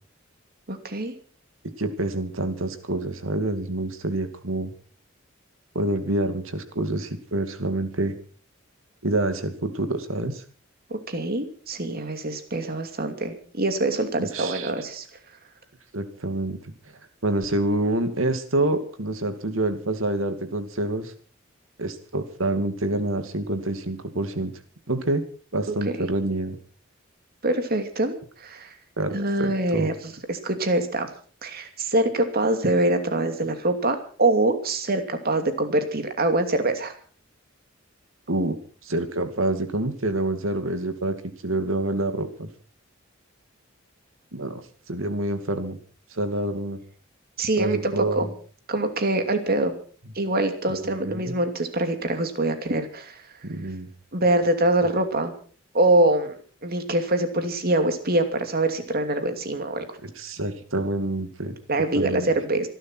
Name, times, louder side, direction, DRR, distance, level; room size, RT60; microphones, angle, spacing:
voice 1, 0.7-1.1 10.9-15.0 25.7-26.1 27.4-28.7 29.1-29.9 30.3-31.1 31.4-36.9 47.4-48.3 48.7-49.8 50.1-53.2 54.1-55.3 55.7-60.0 61.7-62.7, right 2 dB, 50° right, 7 dB, 2.7 m, -24 dB
voice 2, 1.8-4.7 5.7-8.1 9.0-10.4 14.2-14.7 15.9-16.7 17.2-21.1 21.8-24.5 24.9-25.2 25.5-26.6 29.0-29.9 38.3-38.6 38.8-41.2 41.4-42.5 44.3-44.6 44.9-45.8 46.1-46.8 47.6-48.3 50.7-51.4 53.4-53.9 60.0-61.5 61.9-62.3, right 2 dB, 80° right, 9 dB, 2.4 m, -27 dB
26.5 x 12.0 x 4.6 m, 0.42 s
head